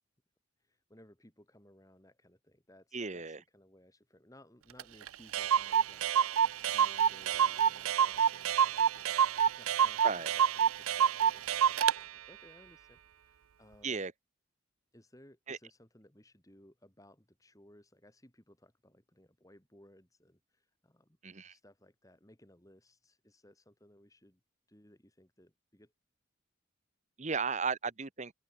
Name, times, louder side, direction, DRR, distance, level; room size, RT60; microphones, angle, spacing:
voice 1, 0.6-6.1 6.7-14.0 14.9-21.2 21.5-24.4 24.7-25.9, left 1 dB, 15° left, 2.8 m, -61 dB
voice 2, 2.9-3.4 10.0-10.3 13.8-14.1 15.5-15.6 21.2-21.5 27.2-28.3, right 5 dB, 35° right, 1.0 m, -35 dB
Clock, 4.8-4.9 5.1-5.2 5.3-12.0, right 8 dB, 85° right, 0.5 m, -28 dB
open air
head